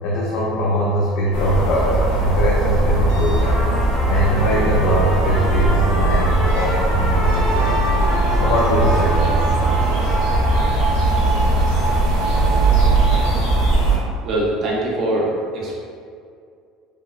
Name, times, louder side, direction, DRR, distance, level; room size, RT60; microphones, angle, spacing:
voice 1, 0.0-3.7 4.1-7.8 8.3-9.3, equal, 65° left, -5 dB, 0.4 m, -21 dB
sound 1, 1.3-14.0, right 2 dB, 80° left, 0.9 m, -19 dB
sound 2, 3.1-13.4, right 5 dB, 80° right, 0.5 m, -29 dB
Trumpet, 3.4-11.3, equal, 20° left, 0.7 m, -30 dB
voice 2, 14.2-15.8, right 1 dB, 35° right, -4 dB, 0.5 m, -22 dB
3.0 x 2.9 x 2.4 m, 2.3 s
cardioid pair, 180°, 0 cm